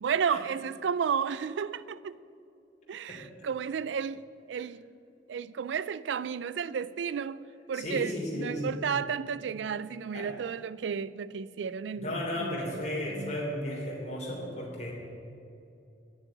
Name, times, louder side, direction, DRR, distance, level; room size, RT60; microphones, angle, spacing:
voice 1, 0.0-2.2 2.9-4.2 4.5-4.8 5.3-12.8 13.2-13.4, right 7 dB, 85° right, 0.4 m, -32 dB
voice 2, 7.7-8.9 10.1-10.3 12.0-14.9, left 1 dB, 40° left, 3.0 m, -34 dB
11.0 x 6.6 x 9.4 m
head